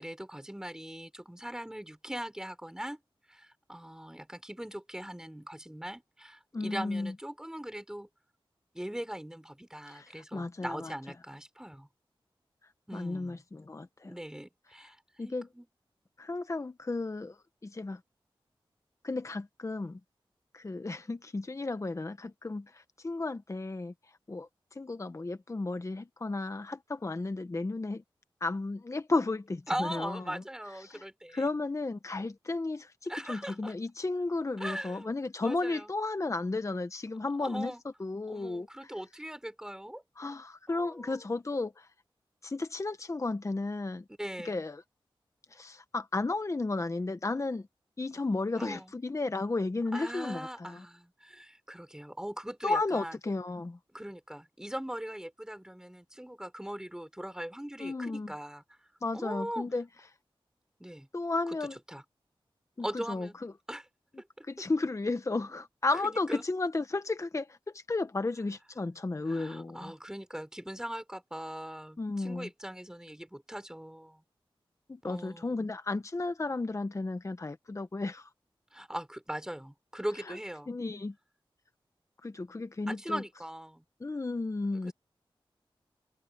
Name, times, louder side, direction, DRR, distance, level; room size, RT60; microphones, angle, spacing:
voice 1, 0.0-3.0 3.3-8.1 8.7-11.9 12.9-13.4 14.0-15.7 29.7-31.4 33.1-33.7 34.6-35.1 35.4-35.9 37.4-37.8 38.3-40.0 40.7-41.2 44.2-44.6 48.6-48.9 49.9-53.1 53.9-58.6 59.1-59.7 60.8-61.1 61.5-61.6 61.9-62.0 62.8-63.3 63.7-63.9 64.2-64.5 66.0-66.4 69.3-74.2 75.0-75.6 78.7-80.7 82.9-83.8 84.7-84.9, right 1 dB, 5° right, 4.5 m, -40 dB
voice 2, 6.5-7.1 9.9-10.9 12.9-14.2 15.2-15.5 16.2-18.0 19.0-20.0 20.5-23.9 24.3-28.0 28.4-30.2 30.8-31.0 31.3-37.7 38.0-38.7 40.2-41.9 42.4-44.0 44.4-44.8 45.5-47.7 48.0-50.8 52.6-53.8 57.8-58.3 59.0-59.9 61.1-61.8 62.8-63.5 64.4-69.9 72.0-72.5 74.9-78.3 80.3-80.4 80.7-81.1 82.2-83.2 84.0-84.9, left 3 dB, 35° left, 1.0 m, -33 dB
wide cardioid pair, 90°, 9 cm